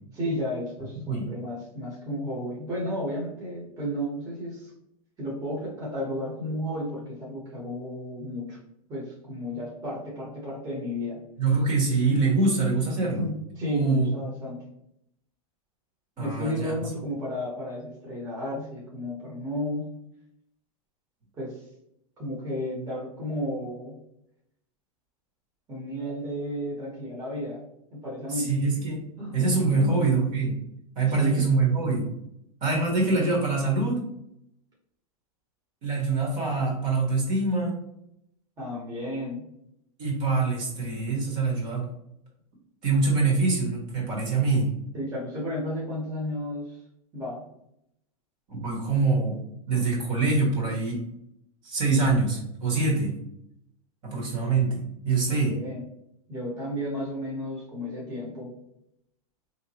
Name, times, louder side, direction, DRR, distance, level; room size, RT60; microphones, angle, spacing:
voice 1, 0.1-4.7 5.2-8.6 8.9-11.2 13.0-14.6 16.2-20.0 21.4-21.6 22.2-23.9 25.7-27.6 27.9-28.5 29.2-30.1 31.1-31.5 38.6-39.5 44.9-46.8 47.1-47.5 55.3-55.8 56.3-58.5, left 1 dB, 20° right, -5 dB, 1.1 m, -33 dB
voice 2, 11.4-13.3 13.6-14.1 16.2-16.7 28.3-29.0 29.3-30.6 30.9-32.1 32.6-34.1 35.8-37.7 40.0-41.9 42.8-44.7 48.5-49.4 49.7-51.0 51.6-53.1 54.0-55.6, right 3 dB, 40° right, -1 dB, 1.4 m, -24 dB
3.5 x 2.9 x 2.9 m, 0.77 s
supercardioid pair, 140°, 19 cm